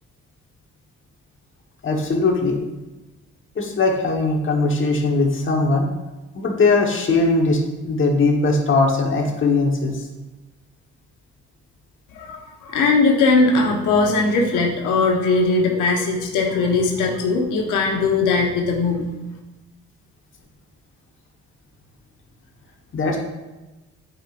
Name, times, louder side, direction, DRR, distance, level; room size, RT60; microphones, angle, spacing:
voice 1, 1.8-2.6 3.6-5.8 6.3-9.9 22.9-23.2, left 3 dB, 40° left, 0 dB, 1.3 m, -20 dB
voice 2, 12.1-19.1, left 3 dB, 90° left, 1 dB, 0.9 m, -19 dB
8.7 x 4.9 x 2.5 m, 1.1 s
cardioid pair, 90°, 30 cm